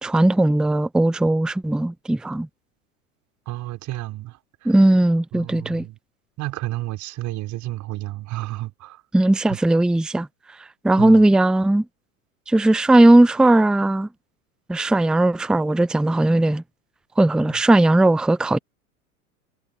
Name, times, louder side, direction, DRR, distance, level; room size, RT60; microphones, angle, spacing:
voice 1, 0.0-2.5 4.6-5.8 9.1-10.3 10.8-11.8 12.5-14.1 14.7-16.6 17.2-18.6, right 1 dB, ahead, 0.7 m, -17 dB
voice 2, 3.5-4.8 5.3-6.0 6.4-9.0 9.5-9.6 11.0-11.3 17.5-17.6, right 17 dB, 40° right, 5.8 m, -31 dB
figure-of-eight pair, 85°, 43 cm